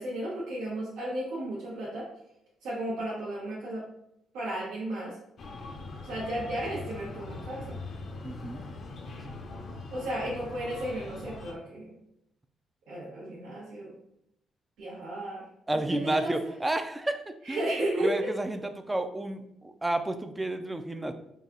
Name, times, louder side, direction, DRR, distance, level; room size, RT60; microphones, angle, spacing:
voice 1, 0.0-2.1 2.6-3.8 4.3-5.2 6.0-7.8 9.9-11.9 12.9-13.9 14.8-15.4 16.0-16.3 17.4-18.3, right 1 dB, 90° right, -6 dB, 1.0 m, -34 dB
Breathing, 5.4-11.5, left 3 dB, 55° left, 0.6 m, -41 dB
voice 2, 8.2-8.6 15.7-21.1, right 1 dB, 15° right, 8 dB, 0.4 m, -31 dB
4.1 x 2.3 x 3.7 m, 0.79 s
cardioid pair, 90°, 0 cm